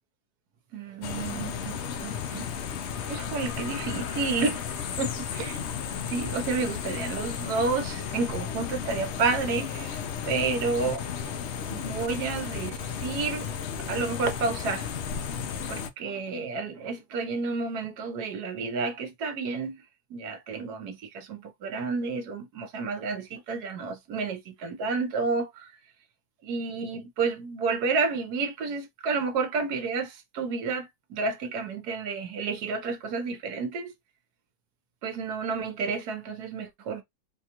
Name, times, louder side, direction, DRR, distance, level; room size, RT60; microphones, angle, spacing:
voice 1, 0.7-11.1 11.7-13.5 13.9-14.9 15.7-19.8 20.1-25.7 26.4-33.9 35.0-37.0, right 4 dB, 75° right, 1.4 m, -31 dB
sound 1, 1.0-15.9, left 7 dB, 65° left, 0.7 m, -34 dB
4.0 x 2.3 x 2.9 m
omnidirectional pair, 1.7 m